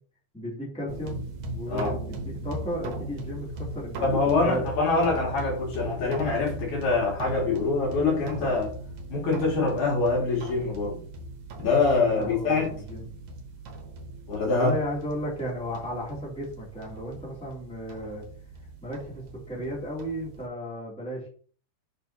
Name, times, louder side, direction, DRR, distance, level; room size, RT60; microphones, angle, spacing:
voice 1, 0.3-1.2 1.5-3.5 3.7-4.7 12.1-13.1 14.5-18.2 18.8-21.3, equal, ahead, -5 dB, 2.3 m, -34 dB
sound 1, 0.9-20.5, right 2 dB, 65° right, 2.1 m, -39 dB
voice 2, 4.0-8.7 9.1-11.0 11.6-12.7 14.3-14.7, left 3 dB, 75° left, -3 dB, 3.8 m, -24 dB
6.6 x 5.7 x 2.8 m, 0.43 s
omnidirectional pair, 3.5 m